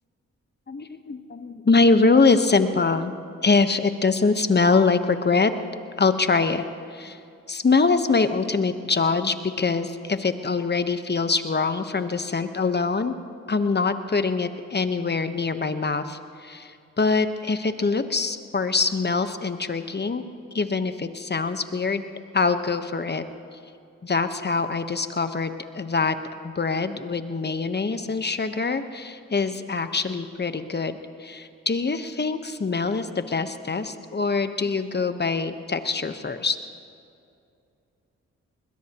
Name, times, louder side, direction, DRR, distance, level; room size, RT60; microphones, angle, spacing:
voice 1, 0.7-3.1 3.4-5.5 6.0-6.6 6.9-7.2 7.5-13.1 13.5-20.2 20.5-22.1 22.3-23.2 24.0-26.1 26.4-36.6, left 4 dB, 35° left, 9 dB, 1.2 m, -24 dB
21.5 x 21.0 x 3.0 m, 2.5 s
supercardioid pair, 50°, 30 cm